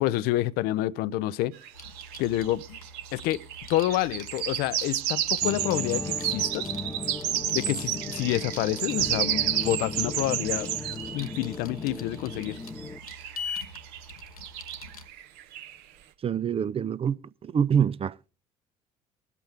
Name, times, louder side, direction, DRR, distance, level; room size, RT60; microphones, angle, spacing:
voice 1, 0.0-1.5 2.2-2.6 3.1-3.4 3.7-6.7 7.5-10.7 11.1-12.6, left 15 dB, 60° left, 0.6 m, -28 dB
sound 1, 1.6-11.5 12.3-15.8, right 11 dB, 65° right, 1.3 m, -31 dB
sound 2, 1.7-15.1, left 4 dB, 85° left, 1.1 m, -44 dB
sound 3, 5.4-13.0, left 3 dB, 15° left, 0.7 m, -37 dB
voice 2, 16.2-18.3, right 8 dB, 30° right, 0.6 m, -26 dB
21.0 x 8.3 x 3.4 m
figure-of-eight pair, 50°, 18 cm